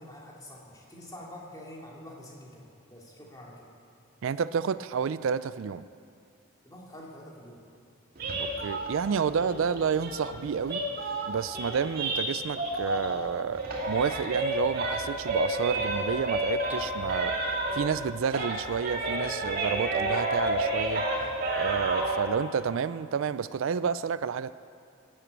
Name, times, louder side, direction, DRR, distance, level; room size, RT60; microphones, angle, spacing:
voice 1, 0.0-3.7 6.6-7.7, left 1 dB, 15° left, -3 dB, 2.5 m, -46 dB
voice 2, 4.2-5.9 8.4-10.8 11.3-17.4 17.7-21.1 21.6-24.5, right 6 dB, 70° right, 15 dB, 0.4 m, -30 dB
sound 1, 8.2-13.3 13.5-18.0 18.3-22.2, right 1 dB, 45° right, 2.2 m, -31 dB
16.5 x 9.1 x 8.1 m, 2.4 s
head